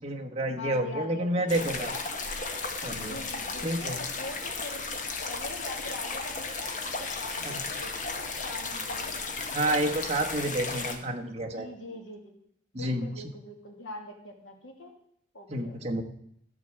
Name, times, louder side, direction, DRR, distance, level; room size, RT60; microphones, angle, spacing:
voice 1, 0.0-1.9 2.8-3.2 3.6-4.0 7.4-7.6 9.5-11.7 12.7-13.1 15.5-16.0, right 1 dB, 35° right, 1 dB, 1.3 m, -29 dB
voice 2, 0.6-2.1 3.0-4.8 5.3-9.2 9.7-9.9 11.4-12.2 12.7-14.9 15.3-16.0, left 2 dB, 85° left, 2 dB, 2.4 m, -43 dB
sound 1, 1.5-11.0, left 4 dB, 40° left, 1.2 m, -34 dB
13.5 x 4.6 x 7.6 m, 0.68 s
head